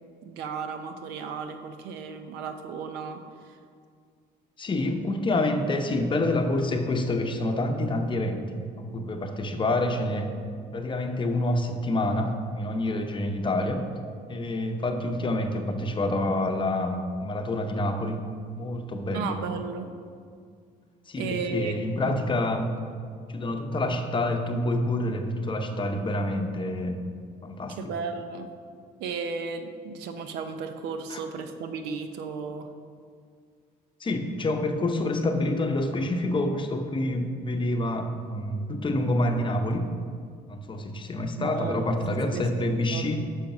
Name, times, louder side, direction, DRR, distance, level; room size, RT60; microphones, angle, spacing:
voice 1, 0.2-3.6 19.1-19.9 21.2-21.8 22.0-22.1 27.7-28.5 29.0-32.7 41.4-41.8 42.3-43.1, right 5 dB, 90° right, 8 dB, 0.6 m, -34 dB
voice 2, 4.6-10.3 10.7-13.8 14.3-18.3 18.6-19.4 21.1-22.8 23.3-27.0 27.4-27.9 31.1-31.2 34.0-39.8 40.5-43.2, left 1 dB, 30° left, 5 dB, 0.8 m, -27 dB
6.4 x 5.2 x 5.9 m, 2.1 s
cardioid pair, 90°, 17 cm